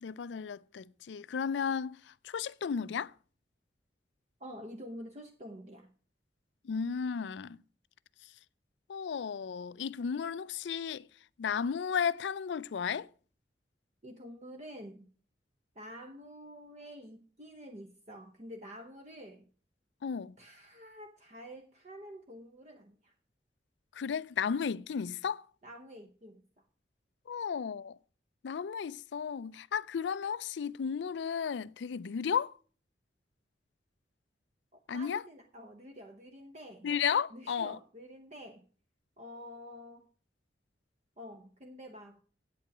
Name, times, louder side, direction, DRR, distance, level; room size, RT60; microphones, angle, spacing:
voice 1, 0.0-3.1 6.6-7.6 8.9-11.1 11.4-13.1 20.0-20.3 23.9-25.5 27.3-28.0 28.4-32.5 34.9-35.2 36.8-37.8, left 7 dB, 85° left, 0.4 m, -34 dB
voice 2, 4.4-5.9 14.0-15.1 15.7-19.5 20.4-23.1 25.6-26.7 34.7-36.9 37.3-38.6 39.2-40.1 41.2-42.2, equal, 40° right, 0.9 m, -48 dB
8.7 x 8.3 x 6.0 m
head